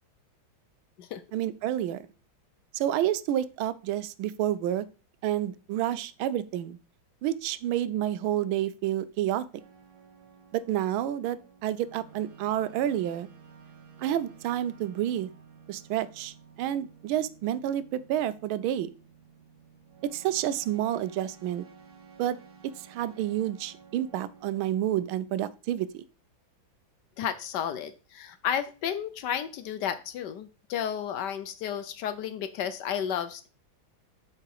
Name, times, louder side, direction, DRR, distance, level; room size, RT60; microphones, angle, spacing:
voice 1, 1.3-2.0 2.7-4.8 5.2-6.8 7.2-9.5 10.5-13.3 14.0-15.3 15.7-18.9 20.1-21.6 22.2-22.4 22.9-26.0, right 12 dB, 90° right, 16 dB, 1.4 m, -29 dB
sound 1, 9.6-25.2, right 6 dB, 60° right, 1.8 m, -54 dB
voice 2, 27.2-33.5, left 9 dB, 70° left, 12 dB, 1.1 m, -32 dB
7.5 x 4.9 x 4.7 m, 0.34 s
omnidirectional pair, 2.2 m